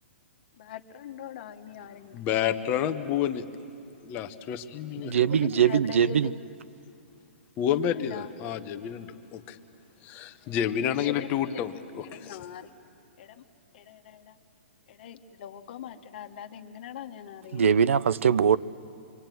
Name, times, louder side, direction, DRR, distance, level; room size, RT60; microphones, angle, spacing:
voice 1, 0.6-2.2 5.3-6.5 7.7-8.3 10.9-11.7 12.0-12.7 13.2-13.3 13.9-14.4 14.9-17.8, left 8 dB, 50° left, 1.4 m, -41 dB
voice 2, 2.1-3.4 4.0-5.2 7.6-9.6 10.0-12.4, left 9 dB, 25° left, 1.0 m, -29 dB
voice 3, 5.0-6.3 17.5-18.6, right 8 dB, 85° right, 0.6 m, -22 dB
25.5 x 24.5 x 9.2 m
hypercardioid pair, 155°, 7 cm